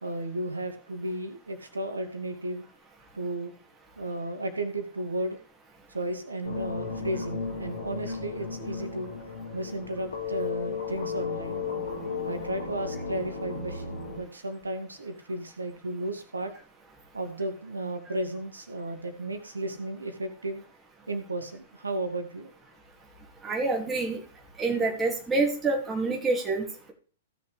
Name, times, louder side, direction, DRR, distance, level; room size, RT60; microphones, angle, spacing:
voice 1, 0.0-2.6 3.1-3.5 4.0-5.4 5.9-9.1 9.5-11.6 12.2-16.5 17.1-20.6 21.1-22.5, right 1 dB, 80° right, 6 dB, 2.1 m, -34 dB
sound 1, 6.4-14.2, left 5 dB, 70° left, 4.0 m, -35 dB
voice 2, 23.4-24.2 24.6-26.9, right 3 dB, 15° right, -1 dB, 2.5 m, -27 dB
16.5 x 6.7 x 3.3 m, 0.41 s
figure-of-eight pair, 105°, 0 cm